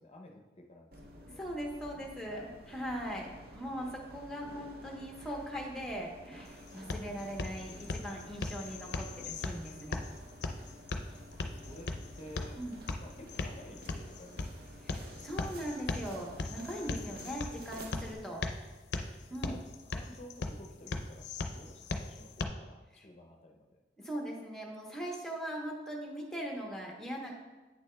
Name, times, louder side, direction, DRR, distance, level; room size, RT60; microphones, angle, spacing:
voice 1, 0.0-1.4 1.9-2.5 11.4-12.7 13.0-15.5 18.9-23.8, left 1 dB, 35° left, 2 dB, 0.7 m, -53 dB
sound 1, 0.9-18.1, right 1 dB, 55° right, 0.6 m, -51 dB
voice 2, 1.3-10.0 12.6-12.7 14.8-18.4 19.3-19.6 22.9-23.1 24.0-27.3, equal, 5° left, -1 dB, 0.9 m, -40 dB
sound 2, 6.4-22.4, left 3 dB, 70° left, 0.5 m, -39 dB
8.6 x 6.8 x 2.2 m, 1.2 s
head